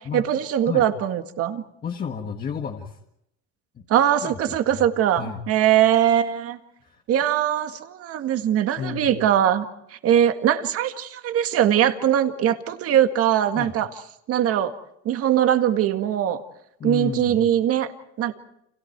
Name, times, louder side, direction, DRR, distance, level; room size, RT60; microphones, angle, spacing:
voice 1, 0.1-1.6 3.9-6.6 7.1-9.7 9.9-13.9 14.3-14.7 15.1-16.4 16.8-17.9 18.2-18.3, right 10 dB, 45° right, 7 dB, 2.0 m, -21 dB
voice 2, 1.8-3.0 3.8-3.9 4.2-4.9 5.2-5.4 6.8-7.0 8.8-9.2 13.6-13.7 16.8-17.4, left 7 dB, 30° left, 2 dB, 1.8 m, -32 dB
30.0 x 28.0 x 4.7 m, 0.77 s
cardioid pair, 130°, 32 cm